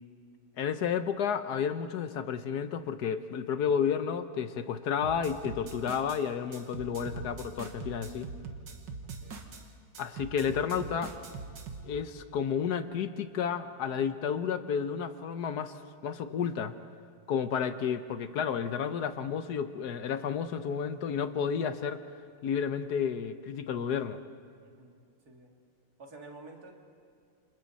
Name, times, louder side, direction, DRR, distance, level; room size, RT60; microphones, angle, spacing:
voice 1, 0.6-8.3 10.0-11.1 11.8-15.7 16.0-16.8 17.3-22.0 22.4-24.2, left 7 dB, 65° left, 10 dB, 1.3 m, -31 dB
sound 1, 5.0-6.2 6.5-9.6 9.9-11.9, right 5 dB, 80° right, 2.2 m, -42 dB
voice 2, 9.0-9.5 24.6-25.0 25.2-25.5 26.0-26.7, right 2 dB, 55° right, 1 dB, 2.7 m, -50 dB
29.0 x 26.5 x 4.1 m, 2.2 s
omnidirectional pair, 2.0 m